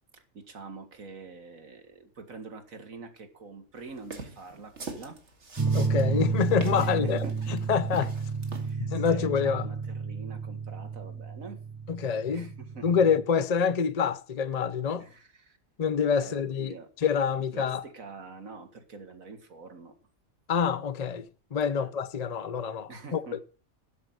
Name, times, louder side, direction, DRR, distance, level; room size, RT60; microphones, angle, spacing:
voice 1, 0.1-5.2 6.8-7.6 8.5-11.6 12.0-12.1 12.3-12.9 15.0-15.6 16.2-16.9 17.5-20.0 21.8-21.9 22.9-23.4, right 4 dB, 85° right, 2.4 m, -46 dB
sound 1, 4.0-8.7, right 3 dB, 60° right, 2.3 m, -42 dB
sound 2, 5.6-13.2, right 5 dB, 20° right, 0.6 m, -31 dB
voice 2, 5.7-8.1 8.8-9.7 11.9-12.5 12.8-15.1 15.8-17.8 20.5-23.2, left 6 dB, 50° left, 0.5 m, -27 dB
12.5 x 6.5 x 7.7 m
omnidirectional pair, 1.4 m